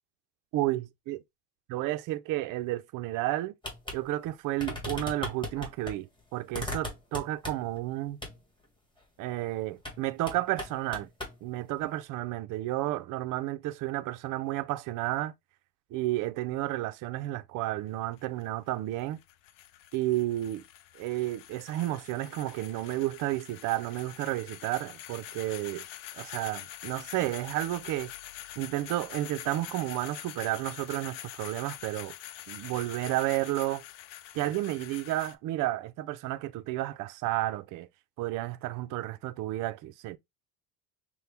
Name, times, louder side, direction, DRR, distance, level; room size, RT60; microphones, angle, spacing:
voice 1, 0.5-1.2 1.7-3.5 3.9-8.2 9.2-11.1 11.4-15.3 15.9-19.2 19.9-20.6 21.0-25.9 26.1-28.1 28.6-32.1 32.5-33.8 34.3-37.9 38.2-40.2, right 16 dB, 45° right, 0.5 m, -32 dB
sound 1, 3.6-4.0 4.2-4.3 4.6-6.0 6.5-7.8 8.2-8.4 9.8-10.0 10.3-11.4, left 1 dB, 10° left, 1.5 m, -37 dB
sound 2, 17.8-35.3, left 13 dB, 80° left, 0.6 m, -45 dB
5.8 x 2.2 x 3.4 m
cardioid pair, 140°, 43 cm